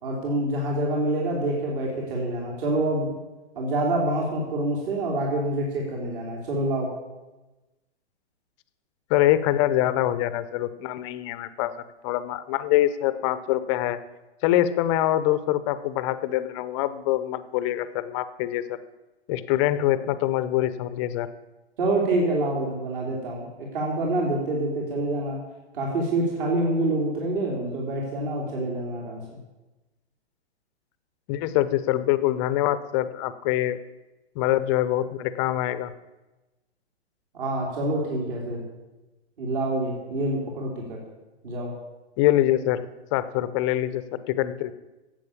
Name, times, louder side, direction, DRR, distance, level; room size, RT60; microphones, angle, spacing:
voice 1, 0.0-3.1 3.5-6.9 21.8-23.4 23.7-25.4 25.7-29.4 37.3-38.6 39.4-41.0 41.4-41.7, right 1 dB, 50° right, -1 dB, 3.3 m, -26 dB
voice 2, 9.1-11.7 12.0-14.0 14.4-18.8 19.3-21.3 31.3-33.8 34.4-35.9 42.2-44.7, left 13 dB, 25° left, 14 dB, 0.6 m, -24 dB
11.0 x 7.9 x 8.5 m, 1.1 s
hypercardioid pair, 130°, 34 cm